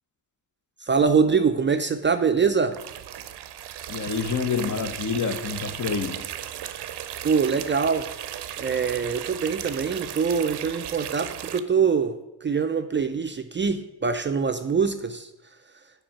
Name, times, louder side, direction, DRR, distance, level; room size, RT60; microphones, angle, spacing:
voice 1, 0.8-2.8 7.2-8.1 8.6-15.3, right 5 dB, 30° right, 0.4 m, -24 dB
sound 1, 2.7-11.6, right 11 dB, 80° right, 0.5 m, -36 dB
voice 2, 3.9-6.3, left 5 dB, 45° left, 0.7 m, -27 dB
5.1 x 4.5 x 5.7 m
cardioid pair, 65°, 40 cm